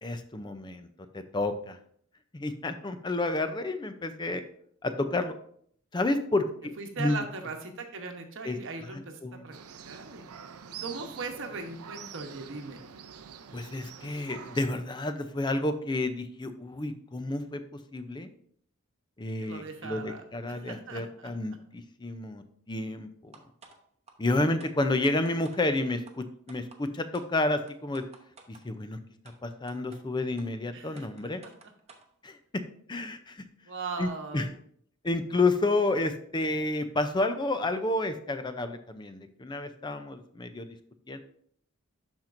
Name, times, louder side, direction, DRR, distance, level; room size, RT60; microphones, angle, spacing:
voice 1, 0.0-0.9 1.1-1.8 2.3-4.4 4.8-5.3 5.9-6.5 7.0-7.2 8.4-8.6 8.9-9.5 13.5-17.6 17.9-18.3 19.2-23.3 24.2-28.0 28.5-29.0 29.4-31.4 32.2-32.6 32.9-33.4 34.0-34.5 35.0-40.7 41.1-41.2, left 2 dB, 20° left, 9 dB, 0.5 m, -30 dB
voice 2, 6.8-9.6 9.8-10.2 10.8-12.8 19.4-21.3 30.7-31.5 33.7-34.5, right 4 dB, 60° right, 4 dB, 1.0 m, -39 dB
sound 1, 9.5-14.7, right 7 dB, 85° right, 0.5 m, -46 dB
sound 2, 23.3-23.8 24.1-24.2 24.6-25.6 26.1-26.2 26.5-26.8 27.1-27.3 27.7-28.6 29.3-29.4 29.7-30.0 30.4-30.5 31.0-32.1, right 4 dB, 30° right, 0.8 m, -52 dB
11.5 x 4.4 x 2.6 m, 0.63 s
head